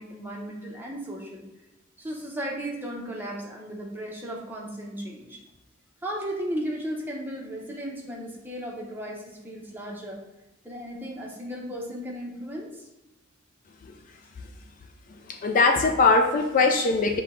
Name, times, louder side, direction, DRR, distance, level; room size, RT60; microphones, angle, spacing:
voice 1, 0.0-1.5 2.0-5.4 6.0-10.2 10.6-12.9, equal, 10° right, -2 dB, 0.7 m, -35 dB
voice 2, 15.3-17.2, left 3 dB, 40° left, 3 dB, 0.3 m, -21 dB
6.6 x 2.2 x 3.6 m, 1.0 s
head